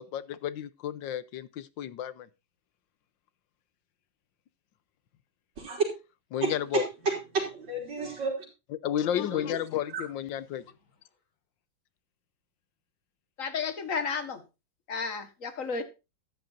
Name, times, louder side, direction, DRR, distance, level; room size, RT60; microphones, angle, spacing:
voice 1, 0.0-2.3 6.3-6.9 8.7-10.6, left 10 dB, 80° left, 1.5 m, -32 dB
voice 2, 6.4-8.3, right 4 dB, 75° right, 4.4 m, -30 dB
voice 3, 9.2-9.6 13.4-14.4 14.9-15.8, left 5 dB, 45° left, 1.8 m, -33 dB
14.0 x 10.5 x 2.6 m
omnidirectional pair, 2.0 m